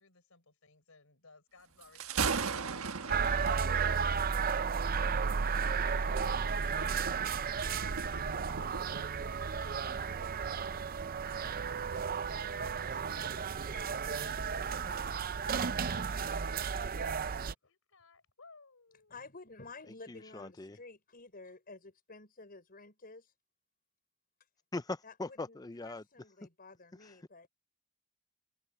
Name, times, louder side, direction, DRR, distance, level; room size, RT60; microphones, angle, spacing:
voice 1, 0.0-19.2, left 3 dB, 70° left, 5.6 m, -62 dB
Thunder, 1.8-9.0, right 5 dB, 80° right, 1.3 m, -39 dB
sound 1, 3.1-17.5, right 6 dB, 45° right, 0.5 m, -33 dB
voice 2, 19.1-23.3 25.0-27.5, left 3 dB, 45° left, 6.0 m, -52 dB
voice 3, 20.1-20.8 24.7-26.0 27.0-27.1, left 2 dB, 20° left, 0.5 m, -40 dB
head